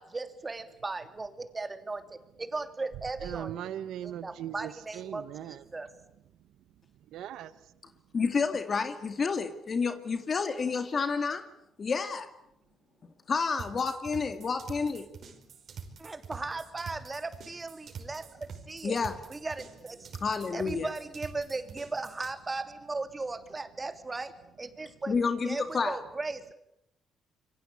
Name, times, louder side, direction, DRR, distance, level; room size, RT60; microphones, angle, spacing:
voice 1, 0.0-3.5 4.0-5.9 16.0-19.0 19.3-20.1 20.5-25.1 25.4-26.5, right 3 dB, 25° right, 3.0 m, -37 dB
voice 2, 3.2-5.6 7.1-7.5, right 11 dB, 85° right, 1.2 m, -39 dB
voice 3, 8.1-11.5 11.8-12.3 13.3-15.1 18.8-19.2 20.2-20.9 25.1-26.0, left 5 dB, 40° left, 2.0 m, -30 dB
sound 1, 13.6-22.3, right 6 dB, 55° right, 5.2 m, -45 dB
27.0 x 24.0 x 8.6 m
cardioid pair, 90°, 0 cm